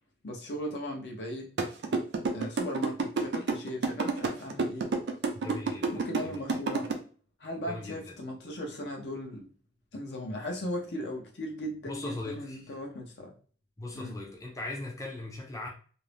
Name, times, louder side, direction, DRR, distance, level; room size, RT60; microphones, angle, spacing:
voice 1, 0.2-1.5 2.3-4.9 5.9-6.9 7.4-9.5 9.9-13.3 13.9-14.2, equal, 75° left, 0.7 m, -37 dB
sound 1, 1.6-6.9, right 4 dB, 80° right, 0.4 m, -28 dB
voice 2, 5.3-6.4 7.7-8.1 11.9-12.8 13.8-15.7, left 2 dB, 20° left, 0.4 m, -39 dB
2.6 x 2.0 x 3.1 m
head